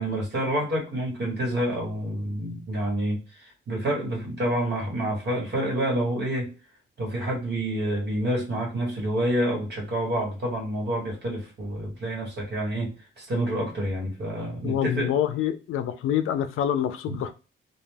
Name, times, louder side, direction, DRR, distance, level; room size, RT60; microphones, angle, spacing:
voice 1, 0.0-6.5 7.0-15.1 17.1-17.2, right 1 dB, 55° right, 1.3 m, -28 dB
voice 2, 14.6-17.3, left 10 dB, 80° left, 0.4 m, -26 dB
2.3 x 2.2 x 3.2 m
cardioid pair, 95°, 21 cm